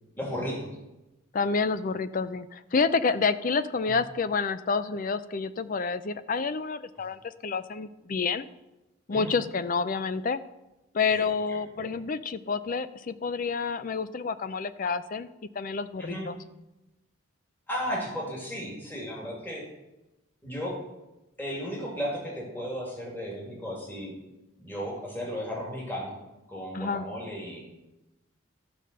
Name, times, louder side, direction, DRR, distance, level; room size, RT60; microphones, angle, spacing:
voice 1, 0.2-0.7 3.9-4.0 9.1-9.3 11.1-11.3 11.8-11.9 16.0-16.2 17.7-19.7 20.4-20.8 21.4-24.1 24.6-26.2 26.5-27.6, equal, 10° left, -3 dB, 2.3 m, -34 dB
voice 2, 1.3-8.5 9.1-10.4 10.9-15.3 15.6-16.4 26.7-27.1, left 5 dB, 40° left, 13 dB, 0.4 m, -29 dB
13.0 x 5.0 x 6.6 m, 1.0 s
head